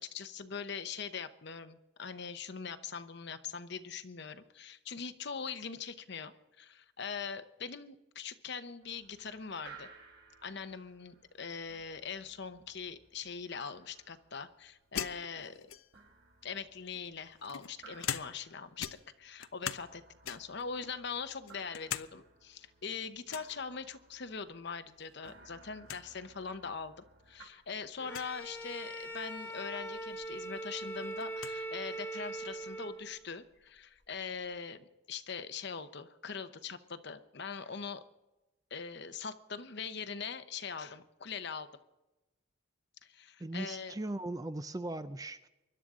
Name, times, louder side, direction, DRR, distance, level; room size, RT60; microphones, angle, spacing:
voice 1, 0.0-9.9 10.4-15.7 16.4-18.9 19.2-38.0 38.7-41.7 43.0-43.9, left 5 dB, 55° left, 10 dB, 0.8 m, -42 dB
sound 1, 8.8-27.4, right 4 dB, 55° right, 4.2 m, -60 dB
sound 2, 14.9-16.1 16.9-18.5 18.8-19.9 20.2-20.6 21.1-22.1 22.4-22.5 23.3-23.6 25.0-25.3 25.6-25.7 25.9-26.0 26.9-27.0 28.0-28.3 30.0-30.1 30.4-31.6, left 9 dB, 80° left, 0.6 m, -41 dB
Bowed string instrument, 28.0-33.2, right 1 dB, 10° left, 1.1 m, -41 dB
voice 2, 43.4-45.5, right 2 dB, 15° right, 11 dB, 0.4 m, -38 dB
24.5 x 12.0 x 3.7 m, 1.0 s
head